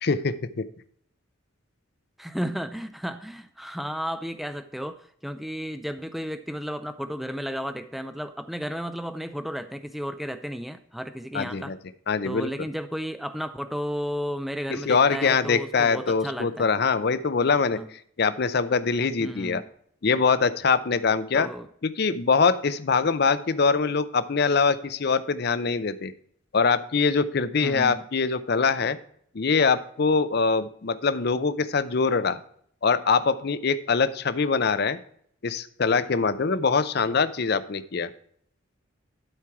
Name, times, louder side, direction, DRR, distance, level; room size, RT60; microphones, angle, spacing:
voice 1, 0.0-0.7 11.3-11.8 12.1-12.5 14.7-17.8 18.2-19.6 20.0-21.5 22.0-26.1 26.5-29.0 29.3-32.4 32.8-35.0 35.4-38.1, left 5 dB, 50° left, 13 dB, 0.5 m, -23 dB
voice 2, 2.2-11.7 12.2-16.7 17.7-17.9 19.2-19.7 21.3-21.7 27.6-28.0, equal, ahead, 10 dB, 0.3 m, -33 dB
12.0 x 4.5 x 4.6 m, 0.63 s
head